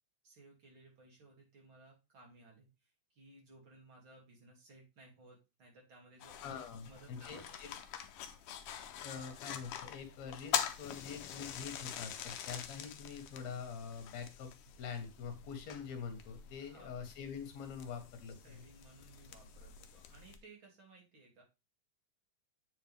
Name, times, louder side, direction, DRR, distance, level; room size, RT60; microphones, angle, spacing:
voice 1, 0.2-6.6 6.9-7.8 9.0-9.4 16.6-17.0 18.4-21.4, right 2 dB, 45° right, -1 dB, 2.8 m, -60 dB
sound 1, 6.2-20.4, left 9 dB, 85° left, 1.3 m, -44 dB
voice 2, 6.4-7.7 9.0-14.5 14.8-18.7, left 6 dB, 70° left, 6 dB, 2.5 m, -45 dB
8.4 x 4.6 x 3.4 m, 0.27 s
omnidirectional pair, 3.4 m